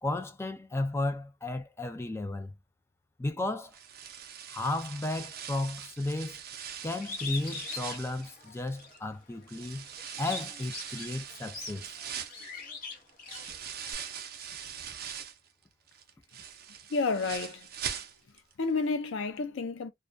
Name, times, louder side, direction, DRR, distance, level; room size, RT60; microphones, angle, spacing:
voice 1, 0.0-2.5 3.2-3.8 4.5-6.4 6.8-9.9 10.2-12.0, left 2 dB, 15° left, 0.3 m, -34 dB
sound 1, 3.7-9.0 9.5-15.5 15.9-18.5 18.8-18.9 19.4-19.5, right 8 dB, 50° right, 0.5 m, -42 dB
Bird, 7.0-9.0 9.4-13.9, left 4 dB, 45° left, 0.9 m, -42 dB
voice 2, 16.9-17.7 18.6-19.9, left 4 dB, 75° left, 0.4 m, -30 dB
2.3 x 2.2 x 2.5 m
head